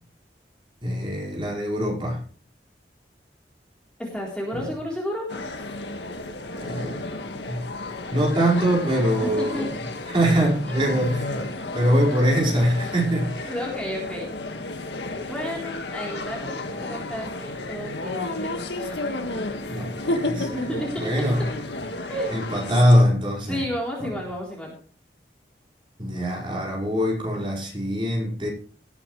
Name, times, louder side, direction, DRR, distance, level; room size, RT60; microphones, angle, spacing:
voice 1, 0.8-2.2 6.6-7.0 7.5-7.7 8.1-9.7 10.1-11.5 11.7-13.5 19.7-20.7 21.0-21.4 22.3-23.6 26.0-28.5, equal, 30° right, -3 dB, 5.2 m, -23 dB
voice 2, 4.0-5.2 9.4-9.7 13.4-14.3 15.3-16.5 16.8-19.0 20.5-21.0 22.1-22.3 23.5-24.7, equal, 5° left, -3 dB, 3.7 m, -32 dB
sound 1, 5.3-23.0, left 2 dB, 85° left, 1.8 m, -32 dB
18.5 x 8.9 x 3.3 m, 0.42 s
head